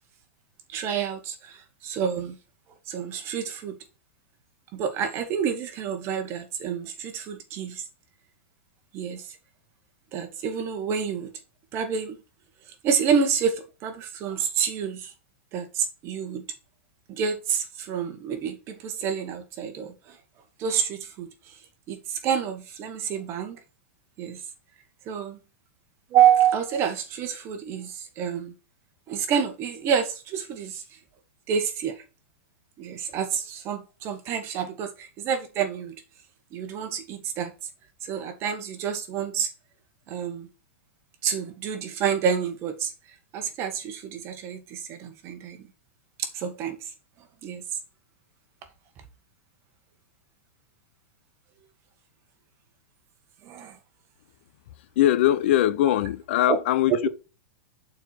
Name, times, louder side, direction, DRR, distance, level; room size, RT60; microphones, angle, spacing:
voice 1, 0.7-1.6 1.8-2.3 2.9-3.7 4.7-7.8 8.9-9.2 10.1-11.3 11.7-12.1 12.8-15.1 15.5-16.4 17.1-19.9 20.6-21.3 21.9-23.6 24.2-24.4 25.1-25.4 26.1-28.5 29.1-30.8 31.5-31.9 32.8-35.9 36.5-37.5 38.0-39.5 40.1-40.5 41.2-42.9 43.3-45.6 46.2-46.8 47.4-47.6 53.4-53.7 56.5-56.6 56.9-57.0, right 8 dB, 40° right, 1.6 m, -28 dB
voice 2, 55.0-57.1, left 13 dB, 65° left, 0.7 m, -21 dB
6.8 x 4.5 x 4.5 m
hypercardioid pair, 125°, 7 cm